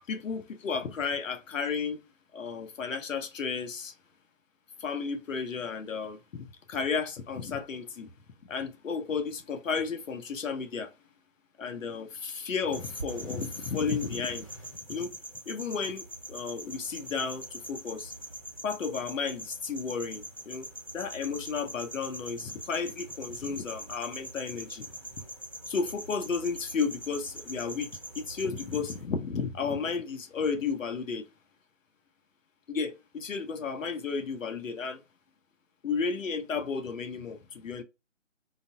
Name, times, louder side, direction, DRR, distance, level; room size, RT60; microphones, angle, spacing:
voice 1, 0.1-2.0 2.3-3.9 4.8-8.1 8.5-10.9 11.6-14.5 14.9-15.1 15.5-18.1 18.6-20.7 20.9-24.9 25.7-31.3 32.7-35.0 35.8-37.8, left 5 dB, 85° left, 0.9 m, -33 dB
sound 1, 12.7-29.1, right 1 dB, 30° left, 0.5 m, -43 dB
3.8 x 2.2 x 2.5 m
hypercardioid pair, 175°, 38 cm